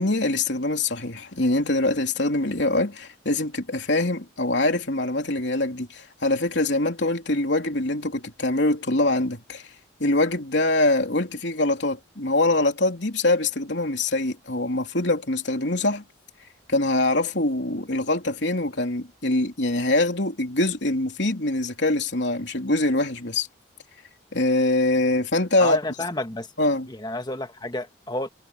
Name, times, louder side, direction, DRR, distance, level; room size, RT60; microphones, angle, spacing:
voice 1, 0.0-9.7 10.0-16.0 16.7-23.5 24.3-25.8 26.6-26.9, left 2 dB, 70° left, 3.4 m, -24 dB
voice 2, 25.6-26.5 26.9-28.3, left 2 dB, 20° left, 1.3 m, -30 dB
head